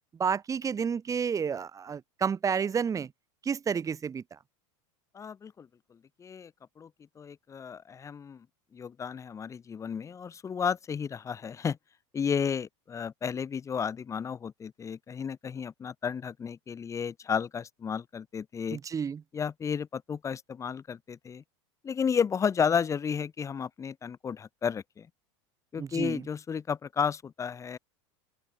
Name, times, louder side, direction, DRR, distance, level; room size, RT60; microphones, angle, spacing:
voice 1, 0.2-3.1 3.4-4.2 18.7-19.2 25.8-26.2, right 6 dB, 20° right, 1.3 m, -30 dB
voice 2, 5.1-6.5 6.8-6.9 7.2-8.5 8.7-11.8 12.1-18.8 19.3-21.4 21.8-25.1 25.7-27.8, left 7 dB, 20° left, 0.7 m, -32 dB
open air
supercardioid pair, 115°, 15 cm